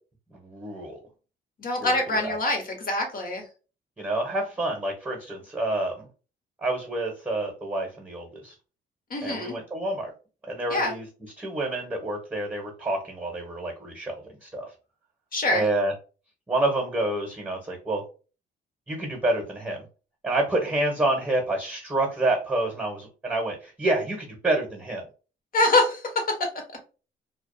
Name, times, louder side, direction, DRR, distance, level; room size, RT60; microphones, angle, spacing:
voice 1, 0.3-1.0 1.8-2.4 4.0-6.1 6.6-8.5 9.2-10.1 10.5-11.1 11.4-14.7 15.5-15.9 16.5-18.0 18.9-19.8 20.2-25.0, right 2 dB, 10° right, 1 dB, 0.9 m, -28 dB
voice 2, 1.6-3.4 9.1-9.6 10.7-10.9 15.3-15.6 25.5-26.0, left 2 dB, 45° left, 3 dB, 1.0 m, -24 dB
2.4 x 2.2 x 2.5 m, 0.34 s
cardioid pair, 90°, 20 cm